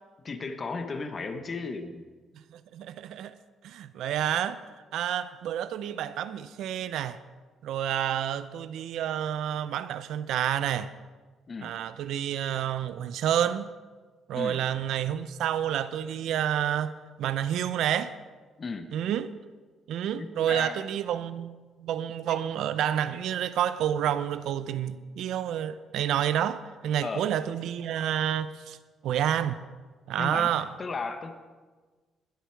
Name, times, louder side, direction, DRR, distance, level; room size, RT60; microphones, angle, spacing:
voice 1, 0.2-2.0 11.5-11.7 14.3-14.6 18.6-18.9 20.2-20.9 22.3-22.4 27.0-27.2 30.2-31.4, left 4 dB, 35° left, 1.2 m, -35 dB
voice 2, 2.5-3.3 3.6-4.6 4.9-7.2 7.6-10.9 11.6-13.7 14.3-16.9 17.2-18.1 18.9-19.3 19.9-28.8 29.0-29.6 30.1-30.7, right 10 dB, 80° right, 0.6 m, -29 dB
21.0 x 8.2 x 4.6 m
cardioid pair, 115°, 0 cm